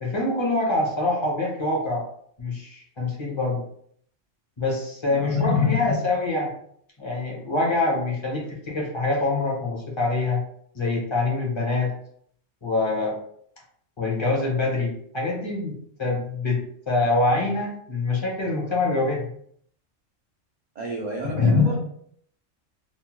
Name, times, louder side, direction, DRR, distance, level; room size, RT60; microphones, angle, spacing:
voice 1, 0.0-2.0 2.4-3.6 4.6-6.5 7.0-10.4 10.7-11.9 12.6-13.2 14.0-15.7 16.0-19.3 21.3-21.8, left 3 dB, 30° left, -2 dB, 0.6 m, -24 dB
voice 2, 5.1-5.5 20.7-21.8, right 3 dB, 70° right, -1 dB, 0.4 m, -33 dB
2.9 x 2.1 x 2.8 m, 0.64 s
omnidirectional pair, 1.3 m